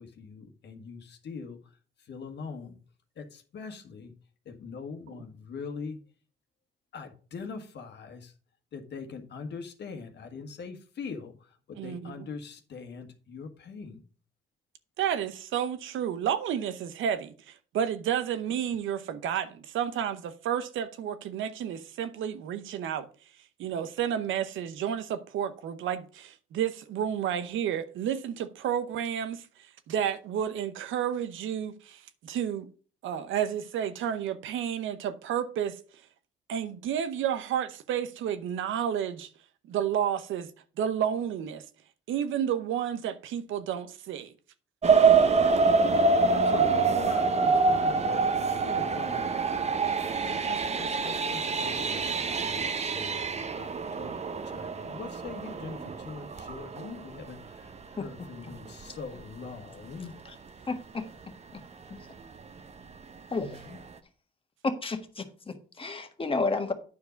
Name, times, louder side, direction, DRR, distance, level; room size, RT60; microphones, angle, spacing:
voice 1, 0.0-1.6 2.1-2.8 3.2-4.1 4.4-6.0 6.9-8.3 8.7-11.3 11.7-14.0 46.3-49.3 50.2-52.1 52.3-54.2 54.4-60.1, left 5 dB, 60° left, 1.5 m, -42 dB
voice 2, 11.7-12.3 15.0-23.1 23.6-29.5 29.9-32.7 33.0-35.8 36.5-39.3 39.7-40.5 40.8-41.6 42.1-44.3, right 9 dB, 80° right, 0.9 m, -31 dB
sound 1, 44.8-57.5 58.1-58.2 58.7-58.8 59.2-59.3, right 4 dB, 35° right, 0.9 m, -26 dB
voice 3, 60.7-61.1 61.5-61.6 61.9-62.0 63.3-63.8 64.6-66.7, left 3 dB, 25° left, 1.5 m, -32 dB
9.4 x 4.8 x 5.2 m
cardioid pair, 90°, 20 cm